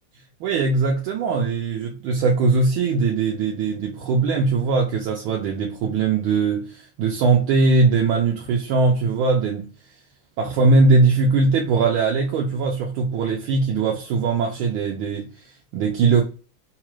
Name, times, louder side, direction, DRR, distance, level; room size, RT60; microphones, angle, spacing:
voice 1, 0.4-9.7 10.4-16.2, right 4 dB, 75° right, 1.4 m, -20 dB
3.9 x 2.4 x 3.0 m
omnidirectional pair, 2.4 m